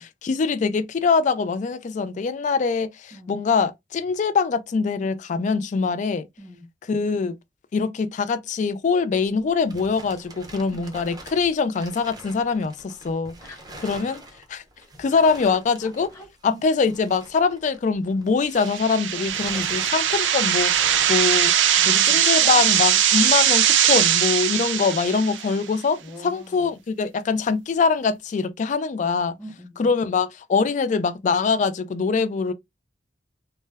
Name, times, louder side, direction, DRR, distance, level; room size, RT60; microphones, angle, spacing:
voice 1, 0.0-6.3 6.9-7.4 7.7-13.3 13.8-14.2 14.5-14.6 15.0-16.1 16.4-21.5 21.9-29.4 29.8-32.5, left 5 dB, 40° left, 0.3 m, -23 dB
voice 2, 6.4-6.7 10.7-11.0 13.4-13.8 15.2-16.6 19.1-19.7 21.8-22.8 26.0-26.7 29.4-29.9, equal, 15° left, 0.8 m, -43 dB
sound 1, 9.3-18.9 19.2-22.9, right 1 dB, 20° right, 0.5 m, -44 dB
sound 2, 18.6-25.6, right 10 dB, 85° right, 0.4 m, -20 dB
2.1 x 2.1 x 3.3 m
head